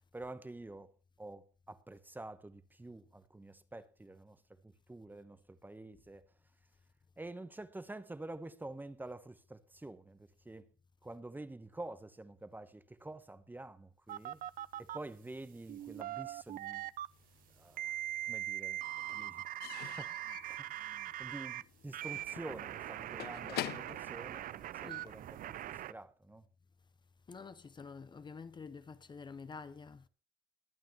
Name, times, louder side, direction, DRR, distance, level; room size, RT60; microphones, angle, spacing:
voice 1, 0.1-0.9 1.2-6.3 7.2-10.7 11.0-14.4 14.8-16.9 17.6-18.0 18.3-18.8 19.1-19.4 19.8-26.5, right 2 dB, 10° right, 0.9 m, -48 dB
sound 1, 14.1-15.0 15.7-17.1 17.8-21.6 21.9-25.9, right 13 dB, 55° right, 0.5 m, -41 dB
Slam / Squeak / Wood, 17.3-18.2 18.4-25.2, left 14 dB, 70° left, 0.7 m, -46 dB
voice 2, 27.3-30.1, left 5 dB, 25° left, 0.8 m, -48 dB
21.0 x 9.1 x 3.0 m
cardioid pair, 110°, 17 cm